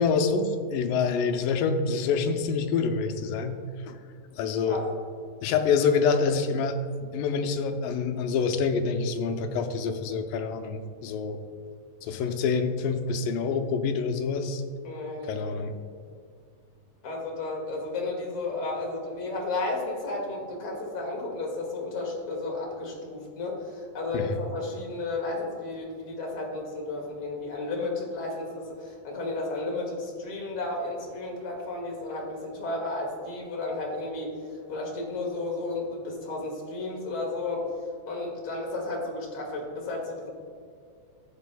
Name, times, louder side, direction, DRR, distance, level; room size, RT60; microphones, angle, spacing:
voice 1, 0.0-3.6 3.9-4.0 4.4-4.8 5.4-11.4 12.0-14.6 15.3-15.7 24.1-24.4, left 5 dB, 85° left, 6 dB, 2.3 m, -26 dB
voice 2, 14.8-15.6 17.0-34.3 34.7-37.6 38.1-40.3, left 2 dB, 45° left, -2 dB, 2.4 m, -33 dB
13.5 x 8.9 x 2.2 m, 2.2 s
omnidirectional pair, 3.8 m